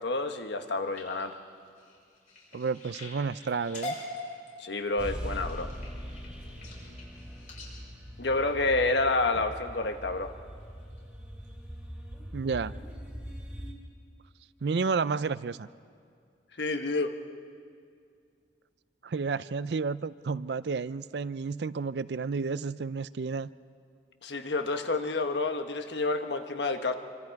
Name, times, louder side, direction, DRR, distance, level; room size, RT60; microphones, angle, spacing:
voice 1, 0.0-1.3 4.6-5.7 8.2-10.3 16.5-17.2 24.2-26.9, left 3 dB, 80° left, 7 dB, 1.3 m, -29 dB
sound 1, 0.6-9.3 9.8-10.2 10.6-11.0 11.4-11.5 11.8-11.9, left 2 dB, 45° left, 6.4 m, -44 dB
voice 2, 2.5-3.9 12.3-12.8 14.6-15.7 19.0-23.5, right 5 dB, 75° right, 16 dB, 0.5 m, -31 dB
sound 2, 5.0-13.7, equal, 5° right, 2.5 m, -41 dB
27.0 x 25.0 x 4.7 m, 2.3 s
head